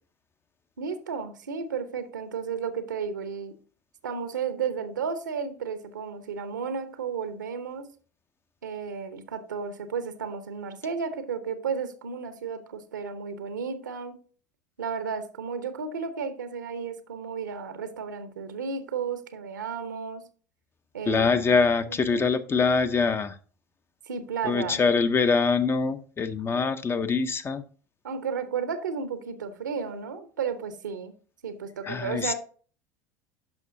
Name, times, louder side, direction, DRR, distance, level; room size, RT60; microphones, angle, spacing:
voice 1, 0.8-3.6 4.0-7.9 8.6-14.2 14.8-20.2 20.9-21.5 21.8-22.3 24.1-24.8 28.0-31.1 31.4-32.3, right 6 dB, 80° right, 0.9 m, -33 dB
voice 2, 21.1-23.4 24.4-27.6 31.8-32.3, left 4 dB, 25° left, 0.7 m, -24 dB
10.5 x 6.0 x 2.7 m
figure-of-eight pair, 75°, 10 cm